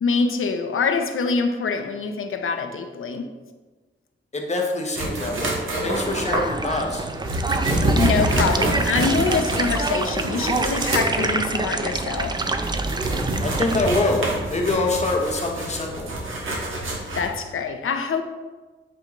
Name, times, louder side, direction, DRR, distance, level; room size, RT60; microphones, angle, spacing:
voice 1, 0.0-3.3 7.9-12.4 17.1-18.2, left 5 dB, 85° left, 6 dB, 0.6 m, -25 dB
voice 2, 4.3-7.0 13.4-16.1, left 2 dB, 35° left, 1 dB, 0.9 m, -25 dB
sound 1, 5.0-17.3, right 1 dB, 75° right, 1.5 m, -27 dB
sound 2, 5.9-13.8, right 3 dB, 20° right, 0.3 m, -26 dB
8.5 x 4.5 x 2.9 m, 1.3 s
wide cardioid pair, 170°, 21 cm